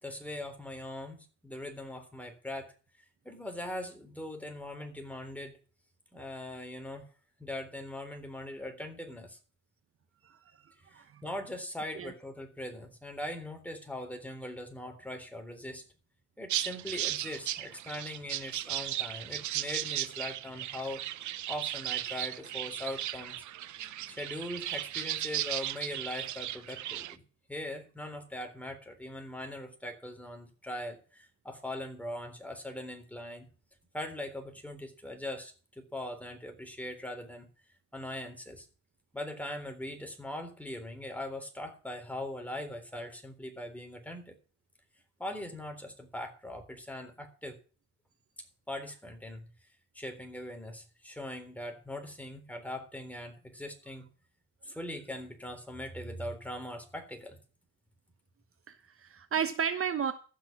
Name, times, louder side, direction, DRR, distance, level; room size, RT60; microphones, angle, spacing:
voice 1, 0.0-2.7 3.2-5.6 6.1-7.1 7.4-9.4 10.9-15.8 16.4-21.0 21.5-23.4 24.1-27.2 27.5-33.5 33.9-37.5 37.9-38.7 39.1-44.4 45.2-47.6 48.7-49.5 49.9-54.1 54.6-57.4, left 1 dB, 5° left, 5 dB, 3.7 m, -41 dB
sound 1, 16.5-27.1, right 13 dB, 75° right, 0.8 m, -36 dB
voice 2, 58.7-60.1, right 7 dB, 45° right, 9 dB, 1.1 m, -33 dB
15.0 x 6.3 x 6.0 m, 0.37 s
cardioid pair, 90°, 30 cm